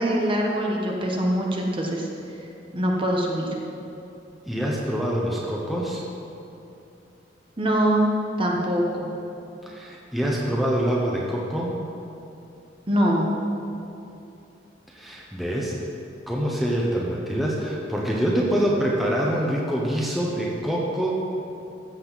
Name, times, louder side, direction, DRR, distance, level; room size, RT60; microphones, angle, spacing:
voice 1, 0.0-2.1 2.7-3.5 7.6-8.1 8.4-9.1 12.9-13.3, equal, 30° right, -1 dB, 1.2 m, -23 dB
voice 2, 4.5-6.0 9.7-11.8 14.9-15.7 16.3-21.2, equal, ahead, -4 dB, 1.0 m, -25 dB
15.0 x 7.8 x 4.1 m, 2.7 s
head